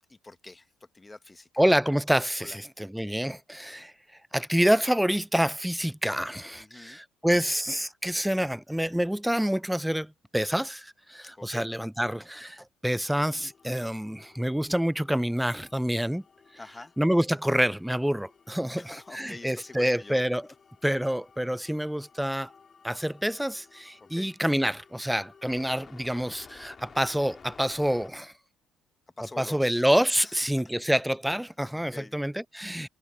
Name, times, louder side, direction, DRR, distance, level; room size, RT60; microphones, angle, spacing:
voice 1, 0.1-0.7 0.9-1.5 2.4-2.6 6.5-7.0 11.4-11.7 16.6-16.9 18.8-20.2 24.0-24.3 29.2-29.8 30.2-30.3 31.8-32.2 32.8-32.9, left 2 dB, 20° left, 1.3 m, -45 dB
voice 2, 1.6-3.9 4.3-16.2 17.0-20.5 20.8-22.5 22.8-28.3 29.4-32.9, equal, 5° right, 0.4 m, -27 dB
sound 1, 12.9-28.1, left 5 dB, 40° left, 4.0 m, -55 dB
supercardioid pair, 80°, 0 cm